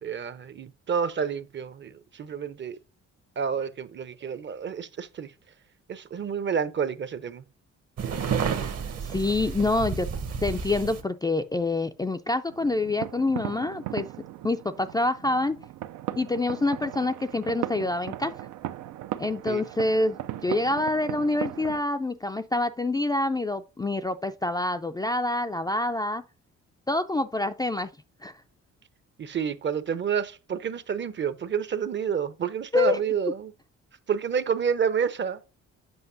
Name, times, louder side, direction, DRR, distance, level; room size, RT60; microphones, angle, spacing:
voice 1, 0.0-2.8 3.4-5.3 5.9-7.4 19.5-19.6 29.2-33.5 34.1-35.4, right 7 dB, 40° right, 0.6 m, -29 dB
sound 1, 8.0-11.0, right 6 dB, 55° right, 1.0 m, -30 dB
voice 2, 9.0-10.1 10.4-14.1 14.4-15.6 16.2-18.3 19.2-20.2 20.4-26.2 26.9-27.9 28.2-28.3 32.7-33.0, left 2 dB, 15° left, 0.3 m, -26 dB
sound 2, 12.5-21.8, right 13 dB, 85° right, 0.5 m, -37 dB
7.9 x 5.3 x 2.6 m
cardioid pair, 90°, 30 cm